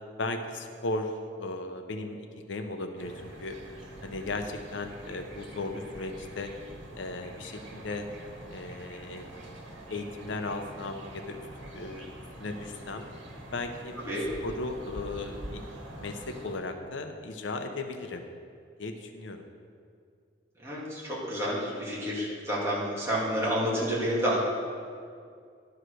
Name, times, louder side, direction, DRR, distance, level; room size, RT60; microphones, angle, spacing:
voice 1, 0.2-3.1 3.4-3.6 4.0-6.5 7.0-8.1 8.5-9.3 9.9-11.4 11.7-12.1 12.4-13.1 13.5-14.1 14.4-15.6 16.0-18.3 18.8-19.4, left 2 dB, 85° left, 6 dB, 0.7 m, -36 dB
sound 1, 3.0-16.6, right 1 dB, 85° right, 1.5 m, -45 dB
voice 2, 20.6-24.4, equal, 15° right, -7 dB, 2.2 m, -29 dB
11.0 x 4.9 x 6.3 m, 2.2 s
head